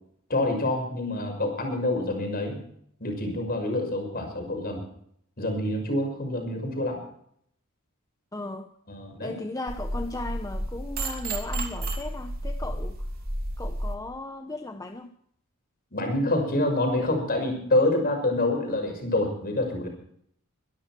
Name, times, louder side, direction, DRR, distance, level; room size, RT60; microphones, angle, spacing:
voice 1, 0.3-2.6 3.0-4.8 5.4-7.0 8.9-9.4 15.9-19.9, left 1 dB, 45° left, 3 dB, 6.1 m, -27 dB
voice 2, 8.3-8.7 9.2-13.1 13.6-15.1, left 2 dB, 15° left, 5 dB, 0.9 m, -36 dB
sound 1, 9.7-14.0, right 1 dB, 45° right, 3.0 m, -32 dB
24.0 x 12.5 x 4.5 m, 0.67 s
head